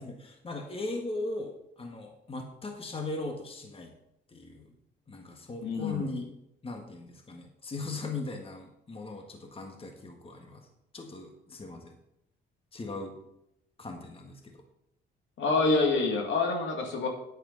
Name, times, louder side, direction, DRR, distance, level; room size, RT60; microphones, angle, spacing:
voice 1, 0.0-3.9 4.3-4.7 5.1-6.3 6.6-10.7 10.9-12.0 12.7-13.1 13.8-14.6, left 2 dB, 30° left, 3 dB, 1.7 m, -39 dB
voice 2, 5.6-6.1 15.4-17.1, left 3 dB, 75° left, 2 dB, 2.3 m, -27 dB
10.5 x 9.6 x 4.1 m, 0.81 s
cardioid pair, 90°, 20 cm